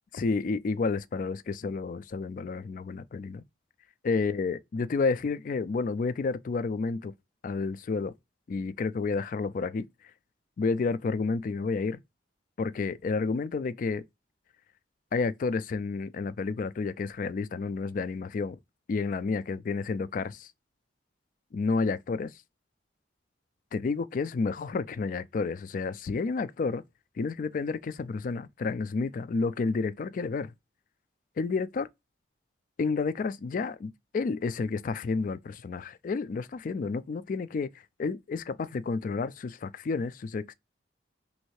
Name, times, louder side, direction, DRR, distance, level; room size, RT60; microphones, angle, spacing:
voice 1, 0.1-3.4 4.0-7.1 7.4-8.1 8.5-9.9 10.6-12.0 12.6-14.0 15.1-18.6 18.9-20.5 21.5-22.3 23.7-26.8 27.2-30.5 31.4-31.9 32.8-37.7 38.0-40.5, left 4 dB, 45° left, 0.3 m, -30 dB
3.2 x 2.6 x 3.1 m
head